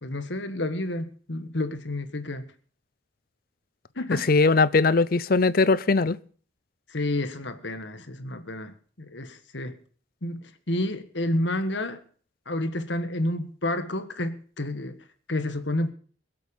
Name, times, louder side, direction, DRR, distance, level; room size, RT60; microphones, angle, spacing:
voice 1, 0.0-2.5 3.9-4.2 6.9-9.7 10.2-12.0 12.5-15.0 15.3-15.9, left 1 dB, 70° left, 1.6 m, -30 dB
voice 2, 4.1-6.2, left 3 dB, 50° left, 0.6 m, -20 dB
22.0 x 7.9 x 5.4 m
head